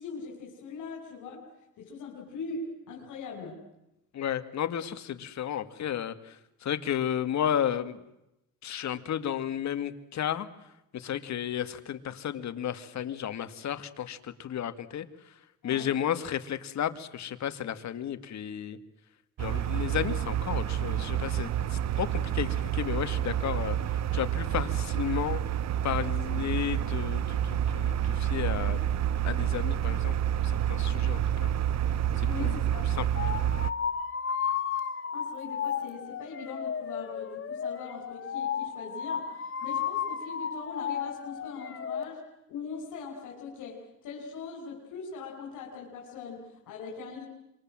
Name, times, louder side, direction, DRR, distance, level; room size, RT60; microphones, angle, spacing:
voice 1, 0.0-1.5 1.8-3.6 15.6-15.9 32.2-32.9 35.1-42.2 42.5-47.2, left 4 dB, 85° left, -2 dB, 5.8 m, -41 dB
voice 2, 4.1-8.0 8.6-10.5 10.9-15.4 15.6-18.8 19.4-25.4 25.8-28.9 29.2-30.2 30.4-31.5 32.2-33.1, left 9 dB, 65° left, 10 dB, 2.1 m, -33 dB
sound 1, 19.4-33.7, right 10 dB, 60° right, 0.9 m, -29 dB
sound 2, 33.2-42.0, left 7 dB, 45° left, 2.1 m, -33 dB
27.0 x 25.5 x 7.7 m, 0.88 s
cardioid pair, 90°, 30 cm